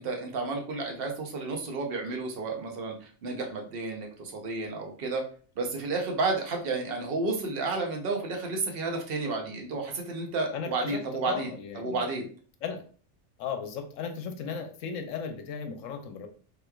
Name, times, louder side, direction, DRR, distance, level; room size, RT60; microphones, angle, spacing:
voice 1, 0.0-5.2 5.6-12.3, right 3 dB, 50° right, 2 dB, 0.8 m, -31 dB
voice 2, 10.5-12.0 12.6-12.8 13.4-16.3, left 6 dB, 75° left, 6 dB, 0.9 m, -36 dB
3.4 x 3.0 x 2.3 m, 0.40 s
omnidirectional pair, 1.4 m